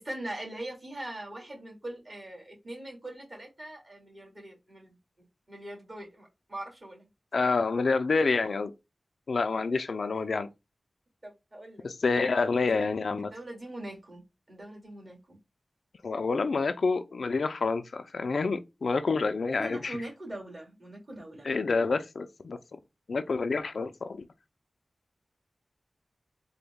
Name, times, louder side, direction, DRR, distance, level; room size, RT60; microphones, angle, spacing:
voice 1, 0.0-5.0 5.5-7.1 10.1-10.4 11.2-11.9 12.4-12.9 13.2-15.4 19.5-21.5, right 1 dB, 45° right, 1.9 m, -42 dB
voice 2, 7.3-8.7 9.3-10.5 11.8-13.3 16.0-20.0 21.4-22.8 23.1-24.3, left 4 dB, 80° left, 0.3 m, -28 dB
3.9 x 2.1 x 3.4 m
cardioid pair, 45°, 0 cm